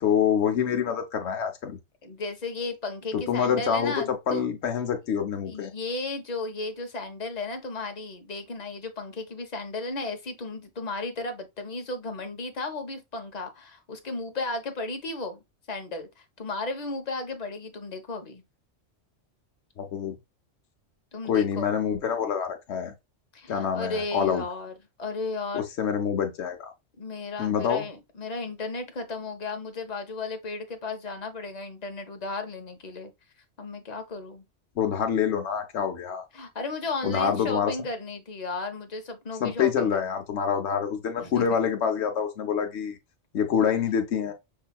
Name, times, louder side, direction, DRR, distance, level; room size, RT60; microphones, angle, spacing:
voice 1, 0.0-1.8 3.1-5.7 19.8-20.2 21.2-22.9 23.5-24.4 25.5-26.7 27.4-27.9 34.8-36.2 37.0-37.7 39.4-43.0 43.3-44.3, left 7 dB, 70° left, 1.1 m, -26 dB
voice 2, 2.0-4.5 5.5-15.4 15.7-18.4 21.1-21.7 23.3-24.7 25.0-25.7 27.0-33.1 33.6-34.4 36.3-40.0 41.2-41.6, left 3 dB, 40° left, 0.9 m, -34 dB
5.6 x 2.8 x 2.2 m
omnidirectional pair, 1.2 m